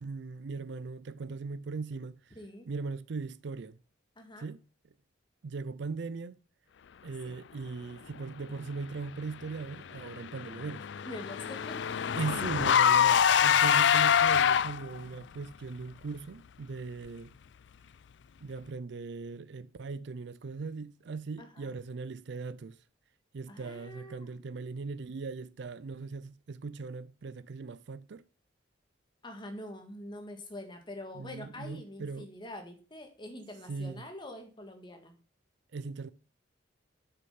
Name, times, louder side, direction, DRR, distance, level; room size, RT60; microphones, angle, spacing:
voice 1, 0.0-2.4 2.7-3.8 4.4-4.6 5.4-6.4 7.0-10.9 12.1-17.3 18.4-22.8 23.3-28.2 31.1-32.3 33.7-34.0 35.7-36.1, right 4 dB, 60° right, 0.4 m, -39 dB
voice 2, 2.3-2.7 4.2-4.5 7.3-7.4 11.0-12.0 21.4-21.8 23.5-24.4 29.2-35.1, left 1 dB, 25° left, 1.7 m, -45 dB
Car / Engine, 10.0-15.0, left 8 dB, 65° left, 0.4 m, -25 dB
7.6 x 6.7 x 5.7 m
head